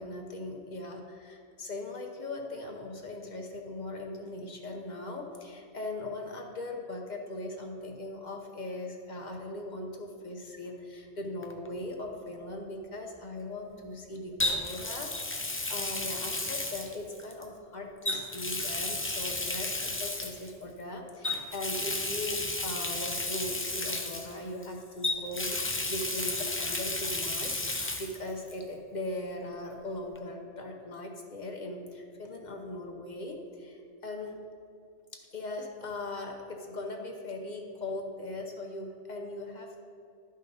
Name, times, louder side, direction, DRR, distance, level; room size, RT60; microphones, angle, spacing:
voice 1, 0.0-34.4 35.1-39.9, left 1 dB, 45° left, 1 dB, 0.8 m, -39 dB
Water tap faucet, 11.4-11.7 14.4-17.4 18.0-20.5 21.2-24.7 25.0-28.2 28.5-28.6 30.1-30.2, left 2 dB, 20° left, 0.3 m, -33 dB
11.5 x 5.3 x 3.9 m, 2.3 s
omnidirectional pair, 1.2 m